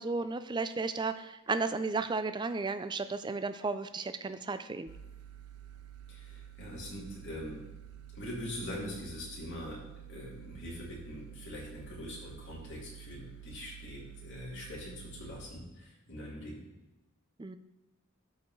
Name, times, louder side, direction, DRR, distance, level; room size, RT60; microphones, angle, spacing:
voice 1, 0.0-4.9 17.4-17.6, right 4 dB, 20° right, 10 dB, 0.4 m, -34 dB
sound 1, 4.9-15.5, right 10 dB, 90° right, 0.5 m, -50 dB
voice 2, 6.1-7.6 8.1-9.8 10.1-16.6, left 1 dB, 55° left, -5 dB, 2.8 m, -43 dB
13.0 x 4.6 x 3.2 m, 1.0 s
head